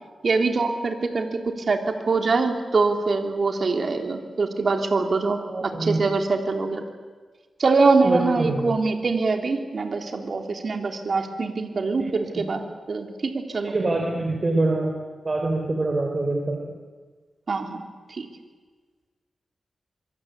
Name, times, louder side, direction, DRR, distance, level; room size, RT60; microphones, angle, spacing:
voice 1, 0.2-1.8 2.1-6.8 7.6-13.7 17.5-17.8 18.1-18.3, right 4 dB, 55° right, 4 dB, 3.3 m, -24 dB
voice 2, 5.5-6.0 8.0-8.8 12.0-12.4 13.7-14.9 15.2-16.6, right 2 dB, 35° right, 1 dB, 4.2 m, -25 dB
25.0 x 24.0 x 8.4 m, 1.5 s
wide cardioid pair, 90°, 0 cm